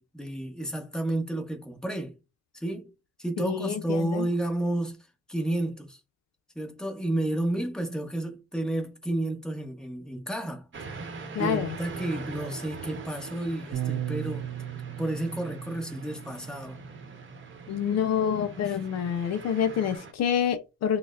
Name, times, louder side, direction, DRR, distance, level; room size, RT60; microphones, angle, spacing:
voice 1, 0.0-2.2 2.5-2.9 3.2-6.0 6.5-10.7 11.4-14.5 15.0-16.8 18.6-18.8, right 1 dB, ahead, 1.0 m, -31 dB
voice 2, 3.4-4.3 11.3-11.8 17.7-21.0, left 8 dB, 60° left, 0.5 m, -27 dB
sound 1, 10.7-20.1, right 4 dB, 40° right, 0.9 m, -42 dB
Bass guitar, 13.7-20.0, right 12 dB, 85° right, 0.5 m, -39 dB
6.2 x 2.1 x 2.4 m
cardioid pair, 90°, 30 cm